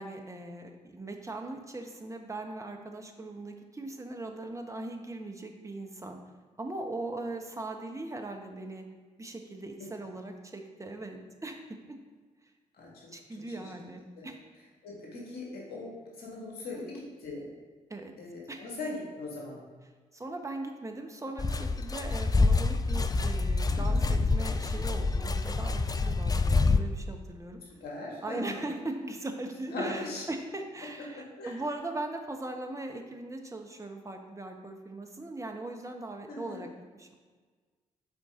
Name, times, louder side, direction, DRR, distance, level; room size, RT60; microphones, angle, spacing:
voice 1, 0.0-6.2 6.6-8.9 9.2-12.0 13.1-14.4 16.7-16.8 17.9-18.1 18.5-18.6 20.1-27.6 28.2-37.2, right 2 dB, 15° right, 3 dB, 1.1 m, -39 dB
voice 2, 12.8-13.1 13.5-13.7 14.2-14.3 14.8-15.9 16.2-17.5 18.2-19.6 23.7-24.1 27.7-28.7 29.7-30.2 31.2-31.6 36.3-36.6, left 2 dB, 65° left, -3 dB, 2.0 m, -40 dB
sound 1, 21.4-26.8, left 3 dB, 20° left, 0.5 m, -26 dB
7.2 x 4.4 x 3.8 m, 1.4 s
hypercardioid pair, 40°, 18 cm